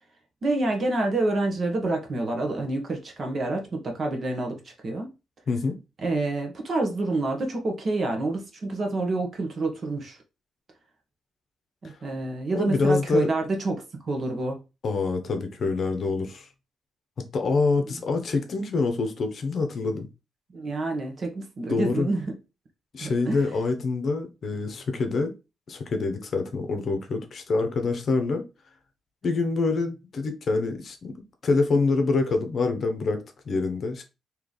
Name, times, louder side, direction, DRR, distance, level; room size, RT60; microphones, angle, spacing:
voice 1, 0.4-5.1 6.0-10.2 11.8-14.6 17.7-17.9 20.5-22.4 23.0-23.4, right 2 dB, 45° right, 1.2 m, -28 dB
voice 2, 12.5-13.3 14.8-16.5 17.2-20.1 21.7-22.1 22.9-25.3 25.7-28.4 29.2-31.1 31.4-34.0, left 3 dB, 50° left, 0.8 m, -26 dB
3.2 x 2.9 x 4.0 m
cardioid pair, 120°, 0 cm